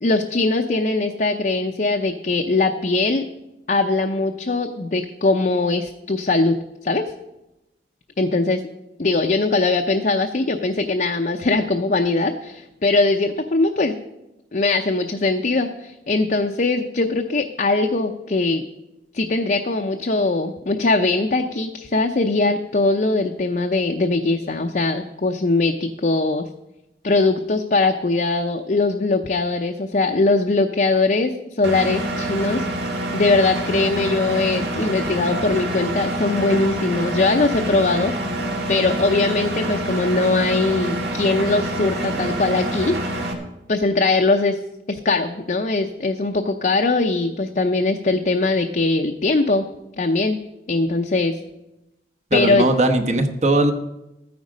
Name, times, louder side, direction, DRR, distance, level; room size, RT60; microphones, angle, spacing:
voice 1, 0.0-3.3 3.7-7.1 8.2-8.6 9.0-13.9 14.5-18.6 19.1-26.5 27.0-32.7 33.1-38.1 38.7-43.0 43.7-44.6 44.9-49.6 50.0-50.4 50.7-51.4 52.3-52.7, left 3 dB, 45° left, 3 dB, 0.6 m, -21 dB
Engine, 31.6-43.3, right 1 dB, 65° right, 1.9 m, -26 dB
voice 2, 52.3-53.7, right 2 dB, 40° right, 7 dB, 1.0 m, -19 dB
13.0 x 9.5 x 5.0 m, 0.93 s
head